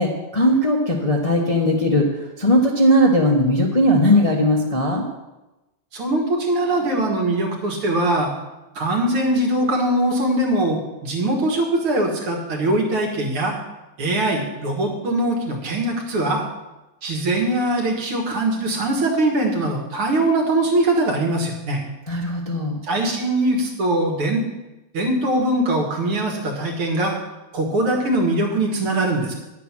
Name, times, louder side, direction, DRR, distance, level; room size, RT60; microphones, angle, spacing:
voice 1, 0.0-2.1 2.4-5.1 22.1-22.8, equal, 25° left, -1 dB, 0.8 m, -18 dB
voice 2, 5.9-8.3 8.8-13.6 14.0-16.4 17.0-21.8 22.8-24.4 24.9-27.1 27.5-29.3, right 1 dB, 80° right, 0 dB, 2.7 m, -21 dB
10.0 x 8.1 x 6.1 m, 1.0 s
omnidirectional pair, 2.4 m